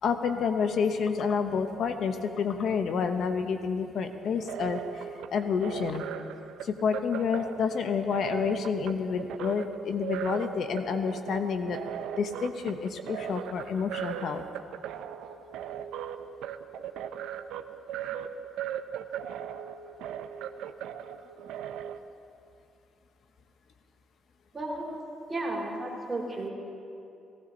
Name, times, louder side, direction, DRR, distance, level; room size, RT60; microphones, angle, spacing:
voice 1, 0.0-5.0 5.3-6.0 6.6-11.8 12.2-14.4, left 6 dB, 65° left, 7 dB, 0.9 m, -29 dB
sound 1, 4.2-22.0, right 9 dB, 90° right, 0.5 m, -38 dB
voice 2, 24.5-24.9 25.3-26.5, right 2 dB, 25° right, -3 dB, 3.5 m, -33 dB
17.0 x 15.5 x 3.9 m, 2.7 s
cardioid pair, 90°, 0 cm